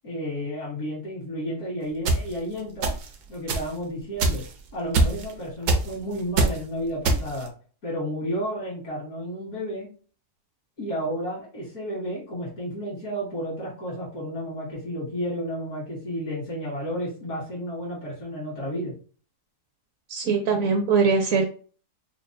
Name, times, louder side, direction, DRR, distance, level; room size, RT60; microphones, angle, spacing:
voice 1, 0.0-2.9 3.3-4.4 4.7-7.5 7.8-9.9 10.8-18.9, equal, 75° left, -8 dB, 2.6 m, -32 dB
sound 1, 2.1-2.2 2.8-3.1 3.5-3.7 4.2-4.5 4.9-5.3 5.7-5.9 6.4-6.6 7.0-7.5, right 2 dB, 85° right, 1.3 m, -22 dB
voice 2, 20.1-21.5, right 5 dB, 70° right, 5 dB, 0.9 m, -21 dB
5.2 x 2.3 x 2.6 m, 0.40 s
omnidirectional pair, 1.7 m